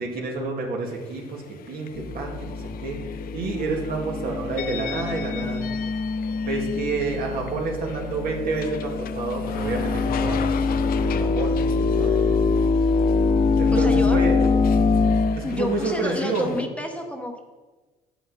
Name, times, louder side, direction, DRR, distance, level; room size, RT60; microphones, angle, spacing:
voice 1, 0.0-1.4 1.7-3.0 3.3-5.6 6.4-12.1 13.6-14.4 15.4-16.5, right 3 dB, 60° right, 0 dB, 2.3 m, -29 dB
sound 1, 0.9-16.7, left 9 dB, 60° left, 0.6 m, -40 dB
sound 2, 1.9-15.4, left 4 dB, 40° left, 0.9 m, -24 dB
voice 2, 13.7-14.2 15.4-17.4, left 1 dB, 5° left, 3 dB, 1.0 m, -30 dB
9.2 x 8.5 x 4.2 m, 1.3 s
cardioid pair, 110°, 17 cm